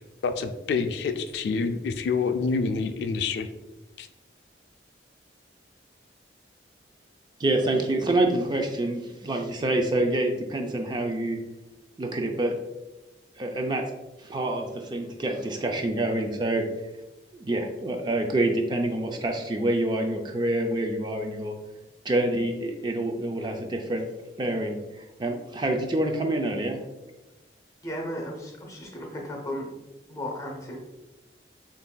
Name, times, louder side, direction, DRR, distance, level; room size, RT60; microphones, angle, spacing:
voice 1, 0.2-3.5 4.0-4.1, left 4 dB, 70° left, 8 dB, 0.3 m, -27 dB
voice 2, 7.4-11.4 12.0-12.5 13.4-13.8 14.2-16.7 17.3-21.6 22.0-24.1 24.4-26.8, right 1 dB, 25° right, 3 dB, 0.4 m, -27 dB
voice 3, 27.8-29.7 30.1-30.8, equal, 20° left, 1 dB, 0.7 m, -35 dB
6.7 x 2.6 x 2.2 m, 1.0 s
head